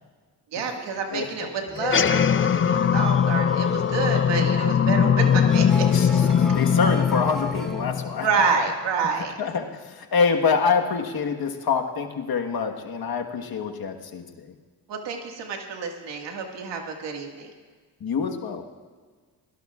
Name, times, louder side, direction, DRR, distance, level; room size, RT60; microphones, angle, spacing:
voice 1, 0.5-5.9 8.2-9.3 14.9-17.5, right 5 dB, 85° right, 2 dB, 2.0 m, -28 dB
sound 1, 1.7-7.9, left 1 dB, ahead, 3.0 m, -38 dB
sound 2, 1.8-8.5, left 8 dB, 30° left, 0.4 m, -21 dB
voice 2, 6.4-8.3 9.4-14.5 18.0-18.6, left 5 dB, 60° left, 3 dB, 1.5 m, -26 dB
24.5 x 17.0 x 2.5 m, 1.5 s
supercardioid pair, 55°, 42 cm